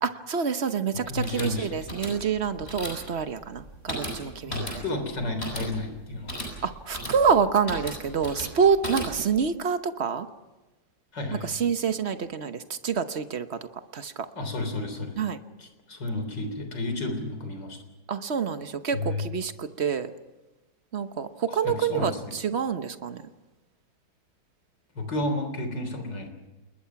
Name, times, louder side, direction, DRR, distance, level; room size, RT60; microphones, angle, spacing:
voice 1, 0.0-4.8 6.6-10.3 11.3-13.6 13.9-14.3 15.2-15.4 18.1-20.1 20.9-23.2, right 6 dB, 45° right, 10 dB, 1.0 m, -27 dB
voice 2, 1.1-1.7 4.4-6.4 11.1-11.5 14.4-15.2 15.6-17.8 18.9-19.2 21.5-22.2 25.0-26.3, left 2 dB, 60° left, 6 dB, 4.2 m, -31 dB
sound 1, 1.1-9.4, equal, 30° left, 8.0 m, -37 dB
28.5 x 21.0 x 5.9 m, 1.1 s
omnidirectional pair, 2.1 m